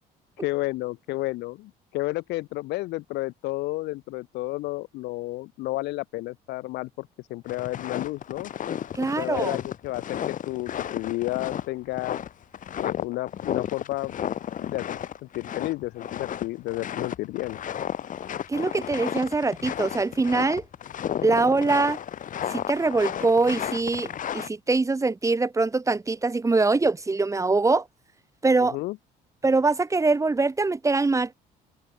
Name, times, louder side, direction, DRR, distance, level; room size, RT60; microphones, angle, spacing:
voice 1, 0.4-8.5 9.0-12.2 12.8-14.2 14.6-17.6 28.6-29.0, left 19 dB, 85° left, 3.8 m, -31 dB
sound 1, 7.5-24.5, left 9 dB, 50° left, 2.5 m, -33 dB
voice 2, 8.9-9.6 18.5-20.6 21.2-22.0 22.5-27.8 28.4-28.8 29.4-31.3, right 3 dB, 20° right, 2.4 m, -23 dB
cardioid pair, 110°, 17 cm